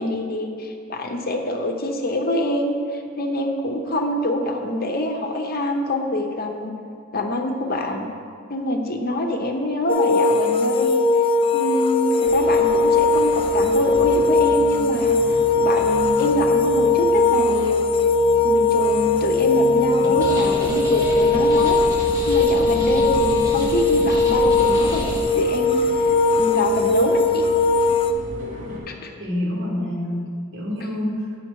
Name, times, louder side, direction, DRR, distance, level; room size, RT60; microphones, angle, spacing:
voice 1, 0.0-6.7 7.1-8.1 8.5-11.0 11.5-17.8 18.4-21.8 22.3-25.8 26.4-27.5 28.9-29.1, left 1 dB, 50° left, 3 dB, 0.7 m, -25 dB
sound 1, 9.9-28.1, left 3 dB, 25° left, 0.4 m, -19 dB
sound 2, 12.2-28.8, left 1 dB, 40° right, 1.5 m, -36 dB
sound 3, 20.0-25.2, equal, 15° right, 1.4 m, -30 dB
voice 2, 29.2-31.4, left 1 dB, 70° right, -4 dB, 1.8 m, -27 dB
8.5 x 5.8 x 4.7 m, 2.2 s
head